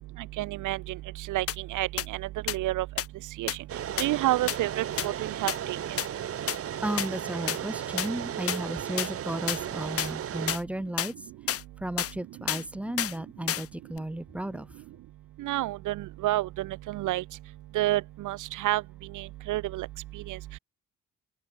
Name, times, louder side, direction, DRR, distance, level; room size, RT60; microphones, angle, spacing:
voice 1, 0.4-1.0 1.3-1.4 1.7-2.8 3.4-3.5 4.0-5.8 15.4-17.2 17.7-18.8 19.1-19.9 20.3-20.4, right 16 dB, 90° right, 1.5 m, -29 dB
sound 1, 1.5-1.6 2.0-2.1 2.5-2.6 3.0-3.1 3.5-3.6 4.0-4.1 4.5-4.6 5.0-5.1 5.5-5.6 6.0-6.1 6.5-6.6 7.0-7.1 7.5-7.6 8.0-8.1 8.5-8.6 9.0-9.1 9.5-9.6 10.0-10.1 10.5-10.6 11.0-11.1 11.5-11.6 12.0-12.1 12.5-12.6 13.0-13.1 13.5-13.7 14.0-14.1, left 11 dB, 50° left, 0.7 m, -29 dB
sound 2, 3.7-10.6, right 10 dB, 50° right, 1.0 m, -35 dB
voice 2, 6.8-11.1 11.8-14.7, right 1 dB, 5° right, 0.4 m, -34 dB
open air
cardioid pair, 90°, 30 cm